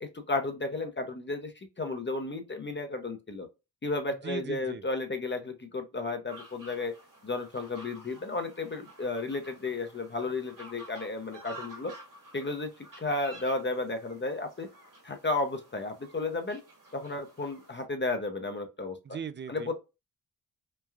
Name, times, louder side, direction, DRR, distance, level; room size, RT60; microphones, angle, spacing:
voice 1, 0.0-3.5 3.8-6.9 7.2-11.9 12.3-12.7 13.0-14.7 15.0-16.6 16.9-19.0 19.5-19.7, left 3 dB, 25° left, 0.6 m, -33 dB
voice 2, 4.2-4.8 19.0-19.7, right 7 dB, 30° right, 0.4 m, -38 dB
sound 1, 6.3-17.8, right 1 dB, 50° right, 1.5 m, -51 dB
3.1 x 2.2 x 2.2 m
cardioid pair, 50°, 42 cm